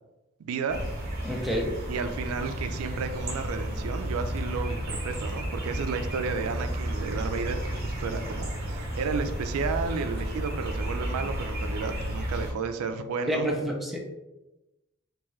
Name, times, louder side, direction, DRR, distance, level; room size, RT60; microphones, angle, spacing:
voice 1, 0.4-0.8 1.2-1.3 1.9-13.5, right 5 dB, 85° right, 8 dB, 0.4 m, -32 dB
sound 1, 0.7-12.5, right 1 dB, 45° right, 0.8 m, -32 dB
voice 2, 1.2-1.7 13.3-14.0, equal, ahead, -2 dB, 0.5 m, -28 dB
3.5 x 2.7 x 3.1 m, 0.99 s
head